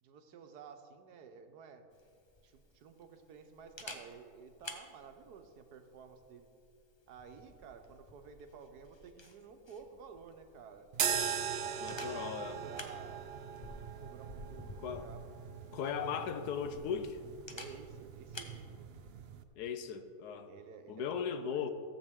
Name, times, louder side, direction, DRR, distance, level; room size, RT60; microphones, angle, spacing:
voice 1, 0.0-1.9 2.4-6.5 7.1-10.9 11.6-13.3 14.0-16.3 17.5-18.9 20.5-21.7, right 6 dB, 85° right, 1.4 m, -53 dB
Camera, 1.9-18.6, left 2 dB, 30° left, 0.5 m, -53 dB
sound 1, 10.9-19.4, right 8 dB, 60° right, 0.6 m, -40 dB
voice 2, 11.8-12.6 14.8-15.1 15.7-17.2 19.6-20.5 20.9-21.7, left 7 dB, 90° left, 1.3 m, -37 dB
15.0 x 7.6 x 3.6 m
omnidirectional pair, 1.6 m